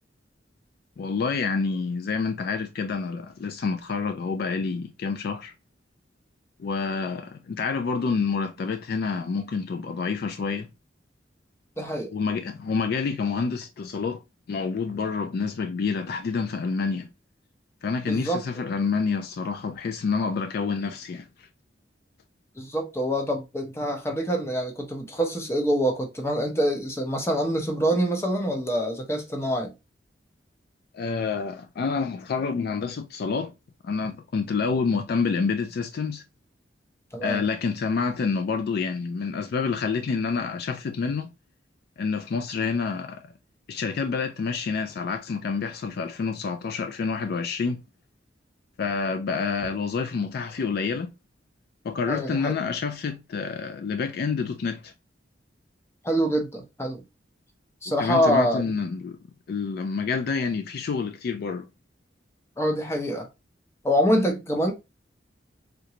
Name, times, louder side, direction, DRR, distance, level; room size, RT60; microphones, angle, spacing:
voice 1, 1.0-5.5 6.6-10.7 12.1-14.2 14.5-17.1 17.8-21.3 30.9-33.5 33.8-36.2 37.2-41.3 42.0-43.3 43.7-47.8 48.8-51.1 51.8-54.9 58.0-59.2 59.5-61.7, left 5 dB, 55° left, 0.3 m, -28 dB
voice 2, 11.8-12.1 18.0-18.4 22.6-29.7 37.1-37.4 52.1-52.5 56.0-57.0 57.8-58.8 62.6-63.3 63.8-64.7, equal, 15° left, 0.7 m, -25 dB
3.7 x 2.2 x 2.8 m
head